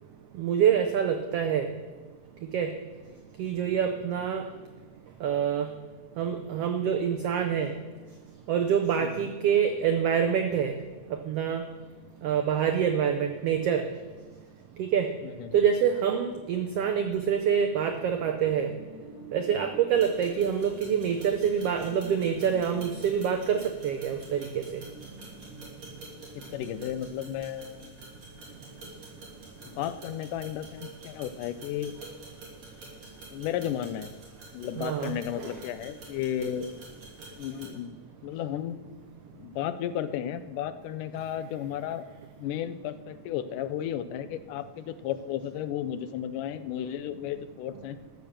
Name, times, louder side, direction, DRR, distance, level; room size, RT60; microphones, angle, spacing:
voice 1, 0.4-1.7 2.5-2.8 3.4-4.4 5.2-5.7 6.2-7.7 8.5-10.7 11.3-11.6 12.2-13.9 14.8-15.2 15.5-18.7 19.3-24.8 34.8-35.6, right 8 dB, 80° right, 6 dB, 1.3 m, -26 dB
voice 2, 15.2-15.5 26.4-28.0 29.7-31.9 33.3-34.1 34.5-36.7 37.4-38.0 38.2-38.9 39.4-42.1 42.4-48.0, left 10 dB, 85° left, 12 dB, 2.2 m, -34 dB
sound 1, 17.6-29.6, right 1 dB, 5° right, 3.9 m, -50 dB
sound 2, 19.9-37.7, right 2 dB, 55° right, 4.1 m, -49 dB
13.5 x 7.1 x 7.2 m, 1.3 s
omnidirectional pair, 3.6 m